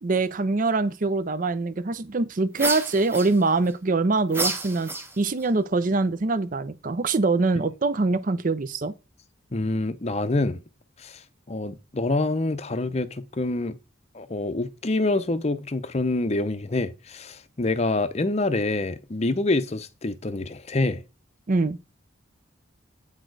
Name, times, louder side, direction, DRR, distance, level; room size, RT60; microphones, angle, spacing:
voice 1, 0.0-4.9 5.2-8.9 21.5-21.8, right 3 dB, 40° right, 0.5 m, -24 dB
sound 1, 2.5-3.7 4.3-5.5, right 2 dB, 10° right, 0.8 m, -30 dB
voice 2, 9.5-10.6 11.0-11.2 11.5-13.8 14.1-21.0, left 2 dB, 30° left, 0.6 m, -26 dB
8.8 x 4.3 x 4.7 m
head